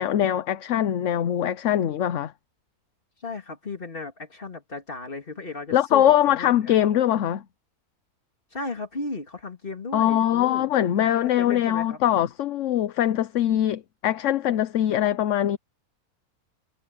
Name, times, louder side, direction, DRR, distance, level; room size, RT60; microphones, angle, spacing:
voice 1, 0.0-2.3 5.7-7.4 9.9-15.6, left 11 dB, 60° left, 1.0 m, -22 dB
voice 2, 3.2-6.7 8.5-12.0, left 3 dB, 35° left, 2.4 m, -35 dB
omnidirectional pair, 1.6 m